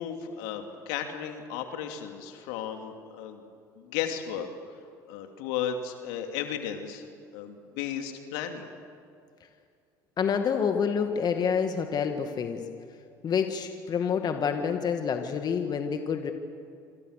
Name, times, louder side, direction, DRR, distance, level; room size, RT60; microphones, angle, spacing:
voice 1, 0.0-3.4 3.8-4.5 5.1-7.1 7.3-8.7, left 9 dB, 75° left, 5 dB, 2.8 m, -34 dB
voice 2, 10.2-12.6 13.2-16.3, left 6 dB, 45° left, 6 dB, 2.1 m, -28 dB
27.5 x 26.5 x 6.7 m, 2.3 s
hypercardioid pair, 70°, 10 cm